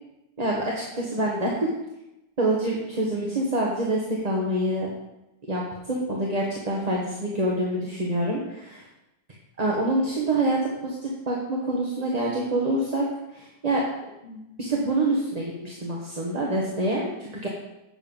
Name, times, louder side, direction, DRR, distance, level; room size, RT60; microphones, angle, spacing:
voice 1, 0.4-1.7 2.4-4.9 5.5-8.8 9.6-13.1 13.3-13.8 14.2-17.5, right 1 dB, 25° right, -3 dB, 1.2 m, -26 dB
8.7 x 7.0 x 5.4 m, 0.94 s
omnidirectional pair, 1.8 m